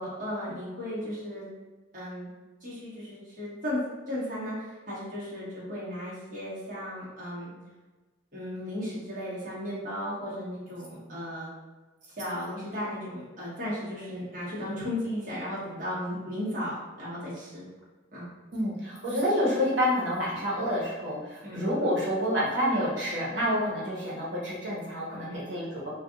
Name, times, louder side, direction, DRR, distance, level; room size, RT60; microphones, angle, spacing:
voice 1, 0.0-1.5 1.9-2.3 2.6-3.8 4.1-7.5 8.3-11.5 12.2-17.6 18.1-18.3 21.4-21.6 25.1-25.6, left 1 dB, 45° right, -8 dB, 1.2 m, -35 dB
voice 2, 18.5-25.9, equal, 75° right, -5 dB, 1.1 m, -28 dB
2.5 x 2.4 x 3.7 m, 1.2 s
head